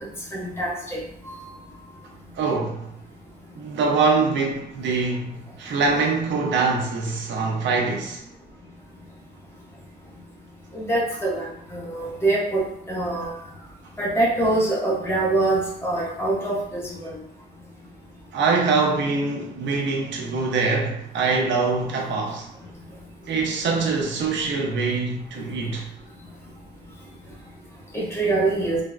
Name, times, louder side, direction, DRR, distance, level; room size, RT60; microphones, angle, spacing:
voice 1, 0.3-1.0 1.3-1.4 10.7-11.5 11.7-12.6 12.9-13.3 14.0-17.1 27.9-28.8, right 2 dB, 15° left, 0.6 m, -24 dB
voice 2, 2.4-2.9 3.6-8.2 11.9-12.0 18.3-22.5 23.3-25.9, right 4 dB, 80° right, 0.6 m, -24 dB
3.3 x 2.0 x 2.3 m
wide cardioid pair, 160°, 19 cm